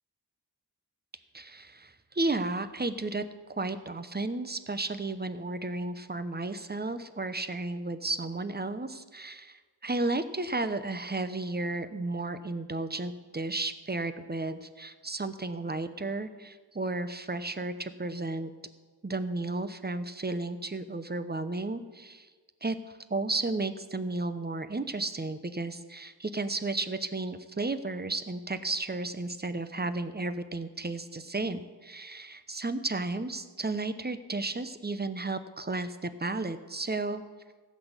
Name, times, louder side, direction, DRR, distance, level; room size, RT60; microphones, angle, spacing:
voice 1, 1.3-3.2 3.5-18.5 19.0-22.3 22.6-37.2, right 2 dB, 25° right, 11 dB, 0.8 m, -33 dB
15.5 x 6.3 x 8.1 m, 1.4 s
wide cardioid pair, 55°, 42 cm